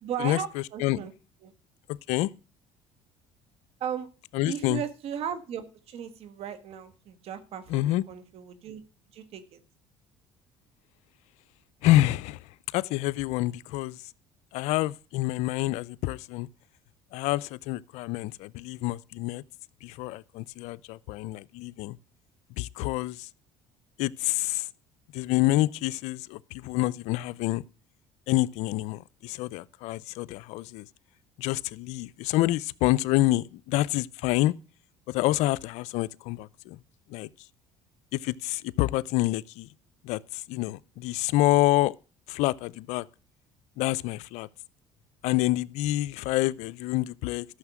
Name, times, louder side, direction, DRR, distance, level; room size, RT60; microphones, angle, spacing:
voice 1, 0.0-1.1 1.4-1.5 3.8-4.1 4.5-8.8 9.1-9.6, right 8 dB, 60° right, 1.6 m, -36 dB
voice 2, 4.3-4.8 7.7-8.0 11.8-14.0 14.5-16.5 17.1-19.4 19.8-22.0 22.5-23.3 24.0-24.7 25.1-27.6 28.3-30.9 31.4-34.5 35.1-36.8 37.1-37.3 38.1-39.7 40.0-41.9 42.3-43.0 43.8-44.5 45.2-47.5, left 17 dB, 75° left, 0.5 m, -27 dB
13.0 x 6.4 x 6.1 m
supercardioid pair, 85°, 12 cm